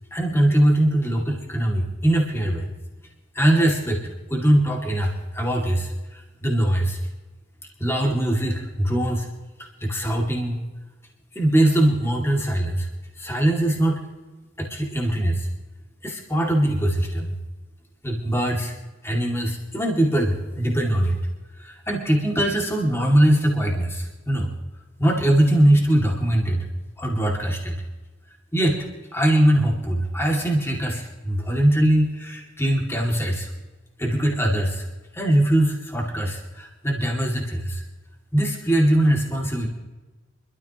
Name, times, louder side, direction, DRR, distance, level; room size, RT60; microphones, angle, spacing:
voice 1, 0.1-2.7 3.3-4.0 4.3-7.0 7.8-9.3 9.8-10.6 11.3-12.9 13.2-14.0 14.6-15.5 16.0-17.3 18.0-18.7 19.0-21.2 21.6-24.5 25.0-26.6 27.0-27.7 28.5-28.9 29.1-33.5 34.0-34.9 35.1-37.8 38.3-39.7, right 1 dB, 10° left, -1 dB, 2.2 m, -21 dB
25.0 x 13.5 x 3.0 m, 1.2 s
head